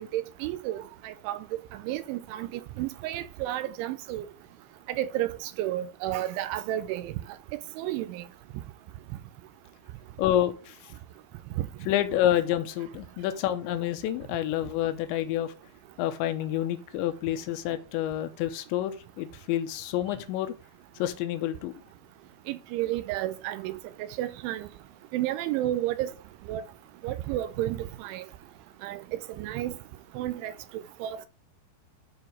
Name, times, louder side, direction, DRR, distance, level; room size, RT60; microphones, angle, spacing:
voice 1, 0.0-1.4 1.7-4.2 4.9-7.1 7.5-8.2 11.6-11.7 22.5-23.8 24.2-24.7 25.1-26.1 26.5-26.6 27.0-28.2 28.8-29.0 29.4-29.8 30.2-31.3, right 14 dB, 80° right, 3.0 m, -32 dB
voice 2, 10.2-10.8 11.9-15.5 16.0-20.5 21.0-21.7, left 12 dB, 75° left, 3.0 m, -28 dB
11.5 x 4.5 x 4.7 m
omnidirectional pair, 5.8 m